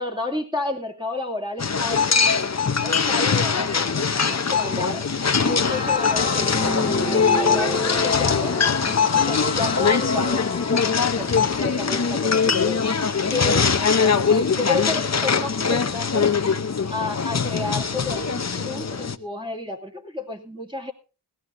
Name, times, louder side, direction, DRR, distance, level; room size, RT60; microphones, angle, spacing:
voice 1, 0.0-2.5 2.8-5.1 5.4-8.6 9.1-12.8 13.3-16.3 16.9-20.9, left 2 dB, 10° right, 2 dB, 2.5 m, -31 dB
sound 1, 1.6-19.2, left 5 dB, 35° left, 0.8 m, -22 dB
sound 2, 5.6-12.5, left 3 dB, 15° left, 1.9 m, -30 dB
20.0 x 16.5 x 2.7 m, 0.33 s
wide cardioid pair, 95°, 46 cm